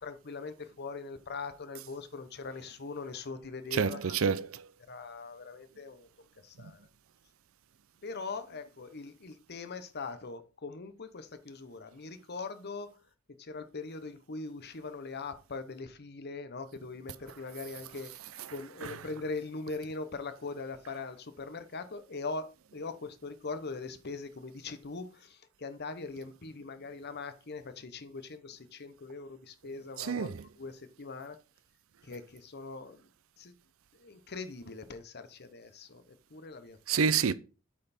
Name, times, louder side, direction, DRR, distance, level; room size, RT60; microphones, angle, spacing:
voice 1, 0.0-4.1 4.9-6.1 6.4-6.8 8.0-13.0 13.3-18.2 18.5-30.3 30.6-31.4 32.0-33.0 33.4-33.6 34.0-37.0, left 3 dB, 50° left, 0.9 m, -41 dB
voice 2, 3.7-4.7 18.8-18.9 30.0-30.4 36.9-37.3, right 6 dB, 70° right, 0.5 m, -28 dB
8.4 x 5.6 x 4.3 m
head